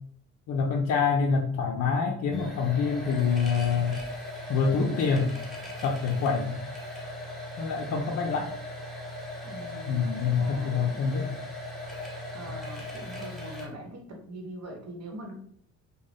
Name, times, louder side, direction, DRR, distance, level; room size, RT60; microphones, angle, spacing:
voice 1, 0.5-4.0 4.5-5.3 5.8-6.6 7.6-8.5 9.9-11.3, left 5 dB, 60° left, 1 dB, 0.5 m, -26 dB
sound 1, 2.3-13.7, left 1 dB, ahead, 0.8 m, -38 dB
voice 2, 9.4-10.0 10.4-11.2 12.3-15.3, right 1 dB, 55° right, 1 dB, 1.0 m, -42 dB
2.5 x 2.2 x 3.4 m, 0.62 s
cardioid pair, 90°, 30 cm